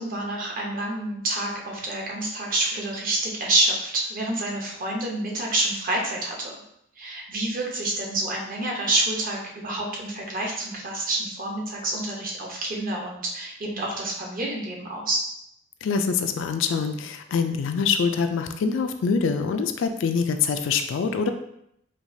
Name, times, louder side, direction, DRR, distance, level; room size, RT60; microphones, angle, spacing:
voice 1, 0.0-6.5 7.0-15.2, right 2 dB, 45° right, -1 dB, 0.8 m, -28 dB
voice 2, 15.8-21.3, left 5 dB, 65° left, 7 dB, 0.3 m, -24 dB
4.5 x 2.4 x 2.6 m, 0.76 s
head